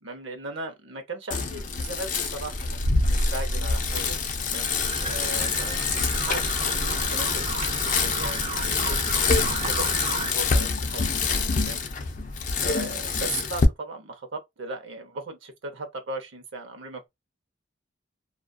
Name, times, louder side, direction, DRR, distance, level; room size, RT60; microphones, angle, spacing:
voice 1, 0.0-2.8 3.0-4.2 4.5-4.7 5.0-5.8 6.3-7.5 7.9-11.8 12.6-17.1, right 2 dB, 80° right, 0.7 m, -37 dB
Bicycle, 1.3-13.6, left 4 dB, 40° left, 0.4 m, -26 dB
sound 1, 4.8-10.3, right 3 dB, 30° right, 0.4 m, -32 dB
2.6 x 2.3 x 2.2 m
head